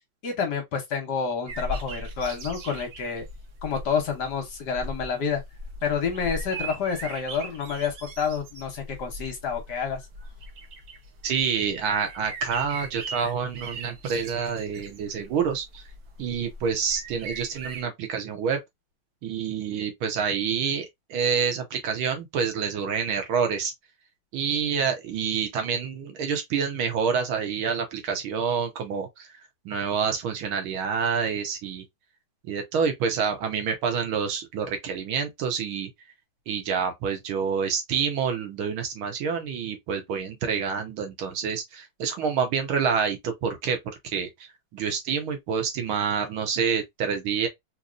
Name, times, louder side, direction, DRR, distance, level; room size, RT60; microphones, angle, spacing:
voice 1, 0.2-3.2 3.6-5.4 5.8-10.0, left 6 dB, 60° left, 1.3 m, -29 dB
sound 1, 1.5-17.8, right 1 dB, 60° right, 1.1 m, -39 dB
voice 2, 11.2-15.8 16.2-18.6 19.2-23.7 24.3-29.3 29.7-31.8 32.4-35.9 36.5-47.5, right 6 dB, 80° right, 1.8 m, -27 dB
3.8 x 2.9 x 2.4 m
omnidirectional pair, 2.3 m